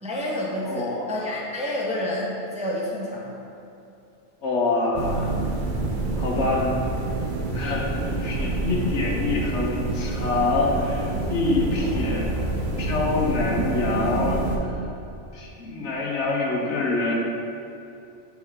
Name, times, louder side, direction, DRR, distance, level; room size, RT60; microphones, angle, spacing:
voice 1, 0.0-3.3, left 1 dB, 5° right, -4 dB, 0.6 m, -29 dB
voice 2, 0.7-1.1 4.4-5.4 6.2-6.7 7.5-12.5 12.8-14.4 15.3-17.1, left 3 dB, 70° left, -1 dB, 1.1 m, -26 dB
sound 1, 4.9-14.6, right 2 dB, 45° right, 0.8 m, -27 dB
5.4 x 4.7 x 4.9 m, 2.7 s
omnidirectional pair, 1.3 m